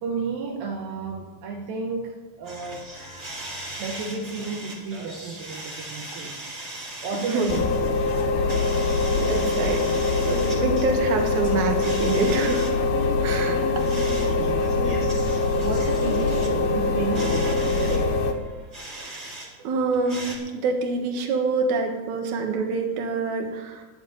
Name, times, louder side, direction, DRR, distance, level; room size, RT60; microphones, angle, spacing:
voice 1, 0.0-2.9 3.8-6.5 7.0-7.8 13.4-14.7 15.4-18.4, right 4 dB, 75° right, 1 dB, 2.6 m, -32 dB
sound 1, 2.4-19.5 19.8-20.4, right 1 dB, 20° right, 1.9 m, -39 dB
sound 2, 7.5-18.3, left 3 dB, 85° left, 2.9 m, -23 dB
voice 2, 9.2-9.9 10.2-12.7 13.2-13.6 14.8-15.0 19.0-19.3 19.6-23.8, right 4 dB, 60° right, 2 dB, 2.7 m, -26 dB
10.5 x 7.8 x 9.4 m, 1.3 s
omnidirectional pair, 4.3 m